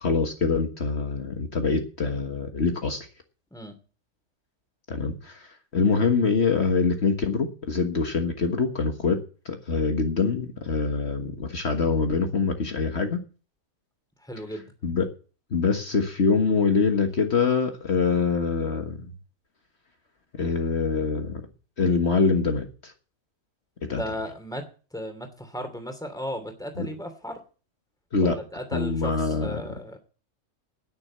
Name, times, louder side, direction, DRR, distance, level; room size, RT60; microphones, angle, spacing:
voice 1, 0.0-3.0 4.9-9.2 9.5-13.2 14.8-15.1 15.5-19.1 20.4-21.4 21.8-22.9 23.9-24.0 26.8-26.9 28.1-28.4 28.7-29.6, left 4 dB, 55° left, 4 dB, 1.7 m, -24 dB
voice 2, 14.2-14.7 23.8-27.4 28.2-30.0, equal, 5° left, 6 dB, 2.7 m, -36 dB
11.0 x 10.0 x 7.4 m, 0.37 s
omnidirectional pair, 1.4 m